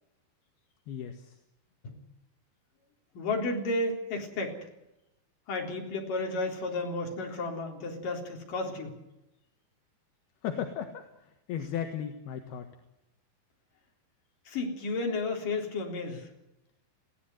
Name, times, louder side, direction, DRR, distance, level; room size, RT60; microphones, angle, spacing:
voice 1, 0.9-1.3 10.4-11.1 11.5-12.7, left 8 dB, 65° left, 6 dB, 3.2 m, -35 dB
voice 2, 3.1-4.6 5.5-8.9 14.5-16.3, left 2 dB, 45° left, 2 dB, 5.0 m, -32 dB
21.0 x 17.0 x 9.5 m, 0.89 s
omnidirectional pair, 5.4 m